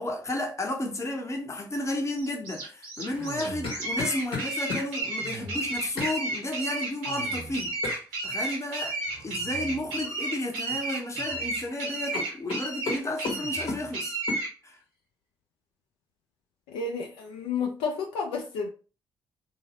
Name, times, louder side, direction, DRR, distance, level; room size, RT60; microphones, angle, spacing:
voice 1, 0.0-7.7 8.2-14.1 14.6-14.8, left 1 dB, 30° left, 0.8 m, -32 dB
sound 1, 2.1-14.5, right 2 dB, 85° right, 0.7 m, -32 dB
sound 2, 3.1-4.9 6.0-6.2 7.8-8.0 10.0-10.3 10.7-11.4 11.7-11.8 12.1-13.8 14.3-14.4, left 3 dB, 60° left, 0.8 m, -34 dB
sound 3, 3.1-4.1 5.2-5.9 7.1-7.9 9.1-10.1 11.1-11.7 13.3-14.0, right 3 dB, 50° right, 0.6 m, -44 dB
voice 2, 16.7-18.7, left 5 dB, 80° left, 0.4 m, -31 dB
2.5 x 2.0 x 2.9 m
hypercardioid pair, 45°, 10 cm